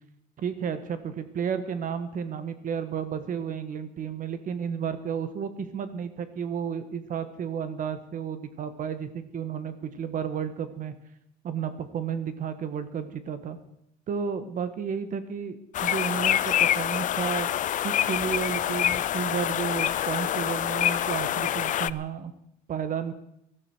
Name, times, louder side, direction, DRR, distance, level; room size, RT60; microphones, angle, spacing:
voice 1, 0.4-10.9 11.4-13.6 14.1-17.5 17.8-22.3 22.7-23.1, right 7 dB, 55° right, 11 dB, 1.5 m, -32 dB
sound 1, 15.7-21.9, left 11 dB, 50° left, 0.5 m, -26 dB
18.5 x 13.0 x 4.6 m, 0.76 s
cardioid pair, 110°, 17 cm